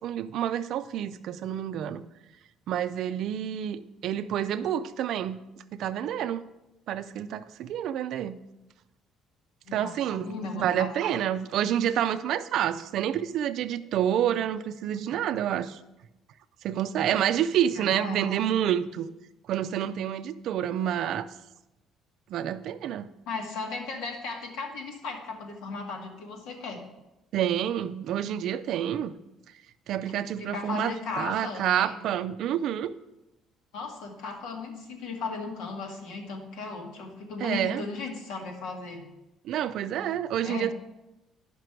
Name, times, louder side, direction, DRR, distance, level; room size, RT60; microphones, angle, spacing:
voice 1, 0.0-2.0 2.7-5.4 5.7-6.4 6.9-8.4 9.7-15.8 16.6-19.1 19.5-21.3 22.3-23.1 27.3-29.1 29.9-32.9 37.4-37.8 39.4-40.7, right 10 dB, 55° right, 12 dB, 0.4 m, -28 dB
voice 2, 9.7-10.9 17.8-18.3 23.3-26.8 30.4-32.0 33.7-39.0 40.4-40.7, left 4 dB, 75° left, 1 dB, 1.9 m, -36 dB
10.5 x 5.9 x 4.6 m, 0.95 s
cardioid pair, 165°, 0 cm